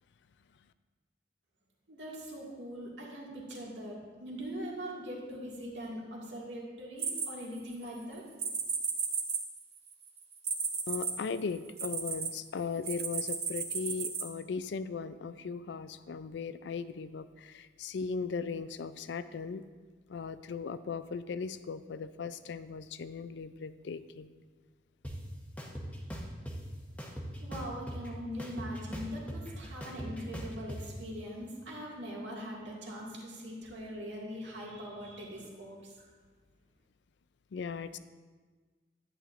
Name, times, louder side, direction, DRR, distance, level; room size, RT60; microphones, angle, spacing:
voice 1, 1.9-8.2 27.4-35.9, equal, 90° right, -4 dB, 2.1 m, -42 dB
sound 1, 7.0-7.8 8.4-12.3 12.8-14.2, right 6 dB, 35° right, 0.9 m, -34 dB
voice 2, 10.9-19.6 20.1-24.3 37.5-38.0, left 5 dB, 75° left, 13 dB, 0.4 m, -38 dB
sound 2, 25.0-25.1 25.6-26.6 27.0-28.1 28.4-30.8, equal, 10° left, 0.9 m, -40 dB
11.0 x 9.3 x 2.5 m, 1.4 s
head